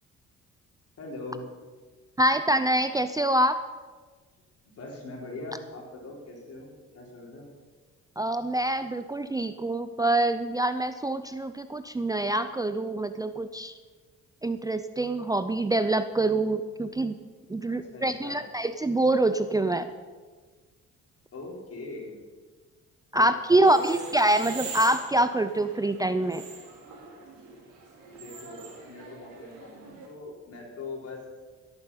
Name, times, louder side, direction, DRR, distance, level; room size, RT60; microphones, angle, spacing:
voice 1, 1.0-1.4 4.6-7.5 17.7-18.4 21.3-22.2 23.1-24.0 28.1-31.2, left 2 dB, 50° left, -1 dB, 4.1 m, -41 dB
voice 2, 2.2-3.6 8.2-13.8 14.4-17.2 17.5-19.9 23.1-26.4, right 1 dB, 10° right, 10 dB, 0.5 m, -25 dB
sound 1, 23.6-30.1, right 4 dB, 85° right, 3.7 m, -43 dB
15.0 x 9.0 x 5.6 m, 1.4 s
cardioid pair, 90°, 30 cm